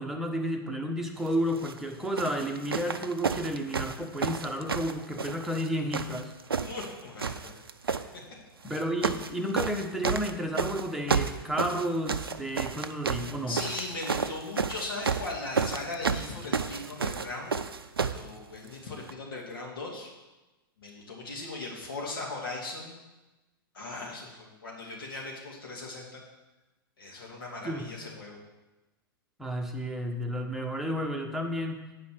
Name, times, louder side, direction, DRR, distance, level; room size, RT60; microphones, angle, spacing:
voice 1, 0.0-6.3 8.6-13.6 27.6-27.9 29.4-31.9, equal, ahead, 2 dB, 1.1 m, -32 dB
sound 1, 1.5-1.8 2.2-5.7 5.9-6.9 7.2-8.0 8.7-9.3 9.6-18.3 19.1-19.2, right 5 dB, 85° right, 0.5 m, -31 dB
voice 2, 6.6-7.5 13.5-17.5 18.0-20.1 20.8-22.9 23.7-26.2 27.0-28.4, left 2 dB, 70° left, -1 dB, 2.3 m, -38 dB
9.0 x 5.2 x 6.7 m, 1.1 s
figure-of-eight pair, 105°, 12 cm